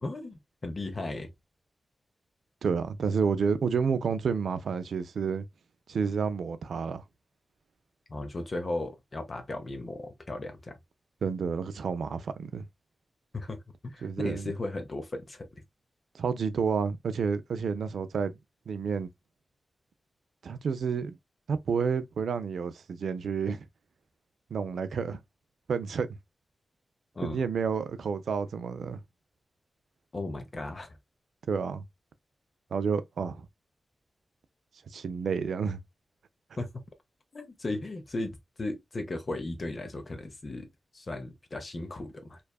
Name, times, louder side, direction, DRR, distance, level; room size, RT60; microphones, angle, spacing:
voice 1, 0.0-1.3 8.1-10.7 13.3-13.6 13.8-15.5 27.2-27.4 30.1-31.0 36.6-36.7 37.3-40.7 40.9-42.4, left 2 dB, 45° left, 0.6 m, -36 dB
voice 2, 2.6-5.4 5.9-7.0 11.2-12.6 14.0-14.5 16.1-18.3 18.7-19.1 20.4-21.2 21.5-23.7 24.5-25.2 25.7-26.1 27.2-29.0 31.5-31.8 32.7-33.5 34.9-35.8, right 6 dB, 90° right, 0.3 m, -30 dB
2.6 x 2.3 x 2.2 m
wide cardioid pair, 85°, 0 cm